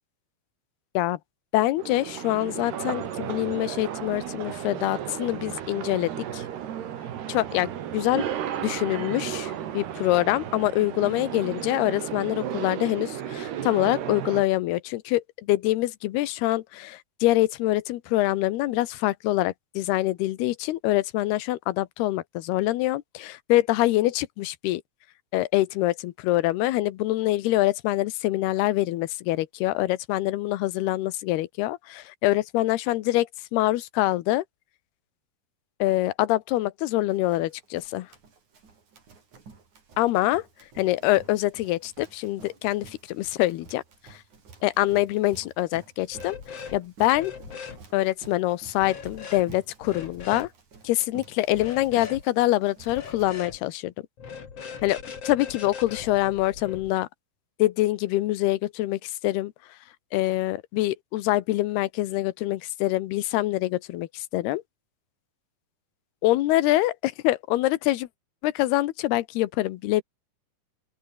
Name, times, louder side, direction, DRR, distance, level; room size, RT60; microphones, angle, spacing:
voice 1, 1.5-6.4 7.3-8.3 8.6-24.8 25.3-34.4 35.8-38.1 40.0-40.4 40.8-43.8 44.1-44.2 44.6-47.3 47.9-50.5 50.8-53.9 54.8-55.0 55.2-57.1 57.6-59.5 60.1-64.6 66.2-68.1 68.4-70.0, left 16 dB, 80° left, 3.0 m, -25 dB
sound 1, 1.8-14.4, right 10 dB, 80° right, 4.4 m, -34 dB
Run, 37.1-53.3, right 5 dB, 50° right, 6.2 m, -51 dB
sound 2, 46.1-46.8 47.1-47.8 48.8-49.4 49.8-50.5 51.5-52.2 52.9-53.6 54.2-56.9, left 6 dB, 40° left, 3.4 m, -40 dB
open air
omnidirectional pair, 4.6 m